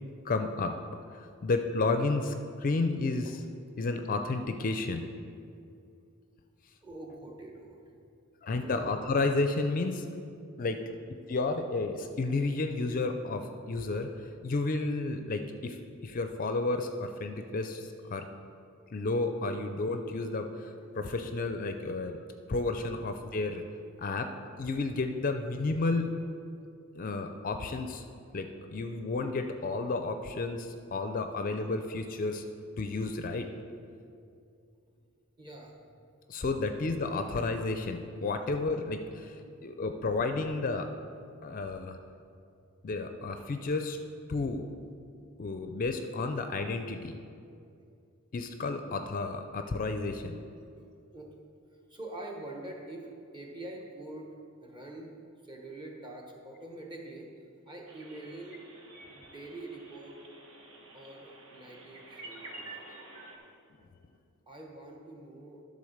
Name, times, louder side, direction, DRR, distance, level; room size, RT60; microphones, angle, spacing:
voice 1, 0.2-0.8 1.1-3.4 3.8-5.1 8.4-10.1 10.6-10.8 11.3-18.3 18.9-22.2 22.5-23.6 24.0-24.3 24.6-26.1 26.9-28.0 28.3-32.4 32.8-33.5 36.3-40.9 41.4-42.0 42.8-44.0 44.3-44.6 45.4-47.2 48.3-50.3, left 3 dB, 40° left, 7 dB, 0.4 m, -32 dB
voice 2, 6.8-8.0 8.6-8.9 24.0-24.1 34.4-34.5 35.4-35.7 38.4-38.5 39.7-39.8 50.2-50.4 50.8-50.9 51.1-51.4 51.9-55.1 55.4-57.3 57.5-58.6 59.1-60.2 60.9-62.9 64.5-65.6, right 2 dB, 20° right, 0 dB, 1.1 m, -45 dB
sound 1, 57.9-63.4, right 2 dB, 60° right, 1.2 m, -49 dB
11.5 x 4.0 x 6.4 m, 2.5 s
head